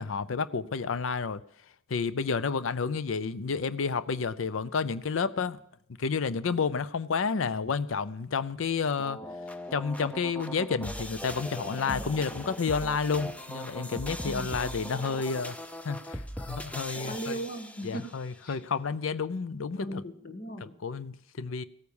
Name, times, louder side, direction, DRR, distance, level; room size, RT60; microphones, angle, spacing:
voice 1, 0.0-1.4 1.9-5.6 6.0-9.2 9.7-15.6 15.8-17.4 17.8-20.0 20.8-21.6, left 5 dB, 80° left, 0.5 m, -30 dB
sound 1, 9.0-18.2, equal, 5° left, 0.6 m, -39 dB
voice 2, 14.3-14.6 17.1-18.0 18.4-18.6 19.8-20.7, right 1 dB, 50° left, 1.7 m, -37 dB
17.0 x 9.4 x 7.0 m
head